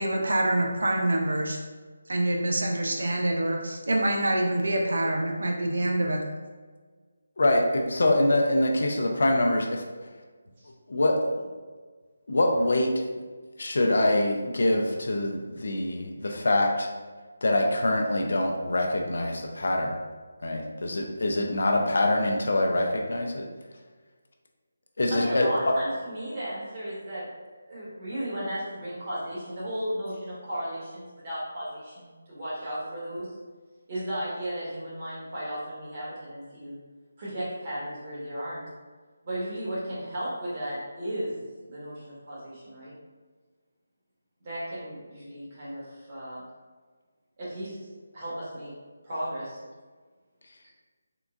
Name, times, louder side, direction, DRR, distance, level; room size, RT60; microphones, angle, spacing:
voice 1, 0.0-1.6 2.1-6.2, right 1 dB, 75° right, 1 dB, 0.5 m, -26 dB
voice 2, 7.4-9.8 10.9-11.5 12.3-12.9 13.6-16.9 17.4-20.0 20.4-23.5 25.0-25.8, left 1 dB, 70° left, 2 dB, 0.4 m, -24 dB
voice 3, 25.1-27.3 27.6-33.3 33.9-36.8 37.2-38.6 39.2-42.9 44.4-46.4 47.4-47.8 48.1-48.7 49.0-49.6, equal, 35° right, -9 dB, 1.4 m, -35 dB
3.7 x 2.2 x 2.4 m, 1.4 s
figure-of-eight pair, 160°, 0 cm